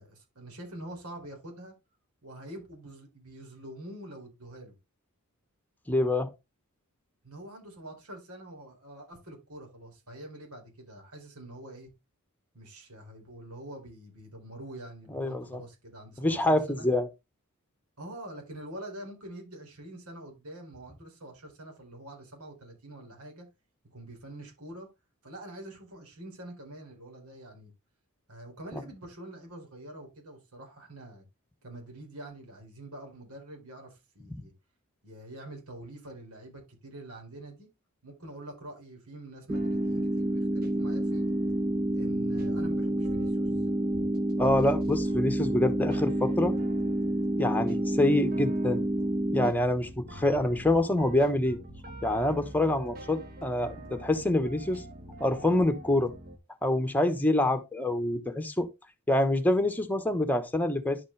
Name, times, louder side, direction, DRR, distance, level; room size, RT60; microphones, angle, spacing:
voice 1, 0.0-1.7 2.2-4.7 7.2-11.9 12.5-16.9 18.0-23.5 23.9-24.9 25.2-27.7 28.3-31.2 31.6-34.5 35.0-37.7 38.0-41.3 41.9-43.5, right 1 dB, 85° right, 4.2 m, -45 dB
voice 2, 5.9-6.3 15.1-15.6 16.2-17.1 28.7-28.8 44.4-46.6 47.4-48.8 49.3-51.6 52.0-54.8 55.2-56.1 56.6-58.7 59.1-61.0, left 1 dB, 10° left, 1.0 m, -26 dB
sound 1, 39.5-49.5, right 1 dB, 15° right, 0.4 m, -28 dB
sound 2, 39.5-56.4, right 1 dB, 45° right, 1.6 m, -45 dB
10.5 x 5.2 x 3.3 m
head